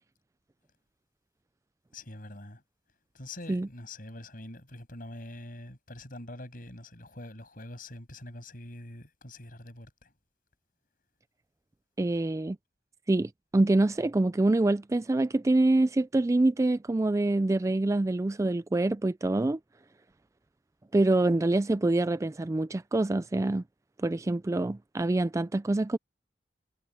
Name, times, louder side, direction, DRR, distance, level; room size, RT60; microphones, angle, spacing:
voice 1, 1.9-2.6 3.1-10.1, left 1 dB, 50° left, 7.0 m, -44 dB
voice 2, 12.0-12.6 13.1-19.6 20.9-23.6 24.0-26.0, right 2 dB, 15° right, 0.3 m, -25 dB
head